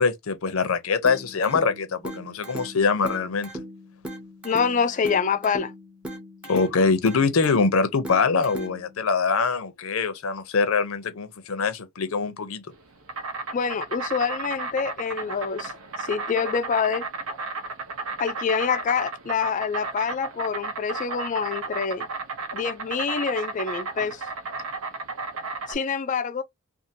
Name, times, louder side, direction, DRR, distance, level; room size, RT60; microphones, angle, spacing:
voice 1, 0.0-3.5 6.4-12.6, left 4 dB, 70° left, 0.6 m, -23 dB
sound 1, 1.0-9.0, right 1 dB, 5° right, 0.6 m, -39 dB
voice 2, 4.4-5.7 13.5-15.7 16.0-17.0 18.2-22.1 22.5-24.2 25.7-26.4, left 6 dB, 35° left, 0.3 m, -26 dB
Insect, 12.7-25.7, right 3 dB, 75° right, 0.7 m, -34 dB
2.6 x 2.4 x 2.7 m
head